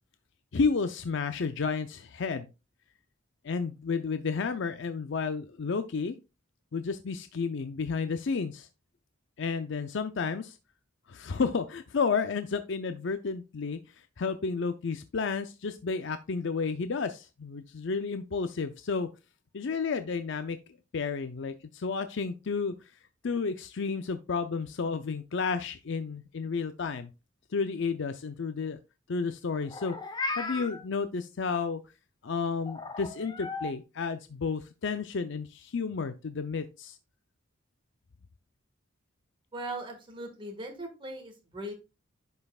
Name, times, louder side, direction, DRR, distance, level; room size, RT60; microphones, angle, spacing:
voice 1, 0.5-2.5 3.4-6.1 6.7-8.7 9.4-10.6 11.1-13.8 14.2-19.1 19.5-20.6 20.9-22.7 23.2-27.1 27.5-28.8 29.1-30.0 30.4-31.8 32.2-37.0, left 5 dB, 65° left, 10 dB, 0.5 m, -31 dB
Meow, 29.6-30.8 32.7-33.7, left 3 dB, 20° left, 0.8 m, -36 dB
voice 2, 39.5-41.7, right 1 dB, 25° right, 2 dB, 1.6 m, -39 dB
10.5 x 5.5 x 2.4 m, 0.28 s
head